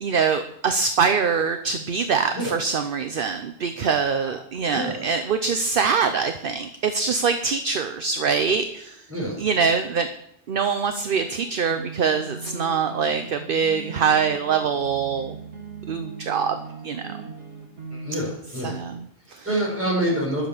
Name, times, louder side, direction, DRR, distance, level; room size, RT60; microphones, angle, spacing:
voice 1, 0.0-9.1 9.4-10.1 10.5-15.4 15.9-17.2 18.6-19.6, right 6 dB, 55° right, 8 dB, 0.9 m, -24 dB
voice 2, 4.7-5.0 9.1-9.4 17.9-18.8 19.4-20.5, right 1 dB, 10° right, -3 dB, 5.7 m, -27 dB
sound 1, 10.9-18.2, right 4 dB, 80° right, 2.5 m, -39 dB
12.0 x 7.5 x 7.1 m, 0.77 s
omnidirectional pair, 1.2 m